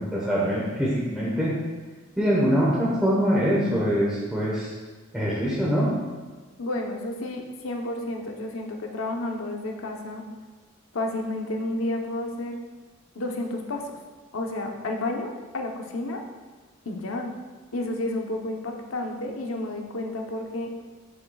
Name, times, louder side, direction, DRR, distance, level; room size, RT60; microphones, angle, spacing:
voice 1, 0.0-1.5 2.2-4.7 5.1-5.9, equal, 5° right, -8 dB, 1.1 m, -23 dB
voice 2, 6.6-10.2 10.9-12.6 13.1-14.0 14.3-16.2 16.8-17.3 17.7-20.7, left 2 dB, 75° left, 2 dB, 0.9 m, -31 dB
11.5 x 5.7 x 2.4 m, 1.3 s
head